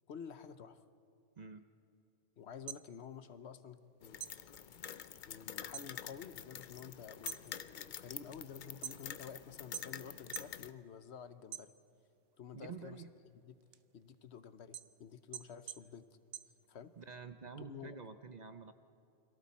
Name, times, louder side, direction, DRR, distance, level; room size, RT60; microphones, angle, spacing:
voice 1, 0.1-0.8 2.4-4.4 5.3-11.7 12.4-13.6 13.9-16.2 16.7-16.9 17.6-18.0, left 7 dB, 70° left, 12 dB, 1.1 m, -51 dB
voice 2, 1.4-1.7 12.5-13.1 17.0-18.7, right 5 dB, 45° right, 9 dB, 0.7 m, -48 dB
sound 1, 2.5-3.9 4.2-5.9 6.3-6.7 7.1-9.3 9.7-10.6 11.0-12.2 12.6-17.1, right 11 dB, 90° right, 1.0 m, -48 dB
sound 2, 4.0-10.7, left 9 dB, 55° left, 0.6 m, -47 dB
29.5 x 22.5 x 4.2 m, 2.6 s
omnidirectional pair, 1.2 m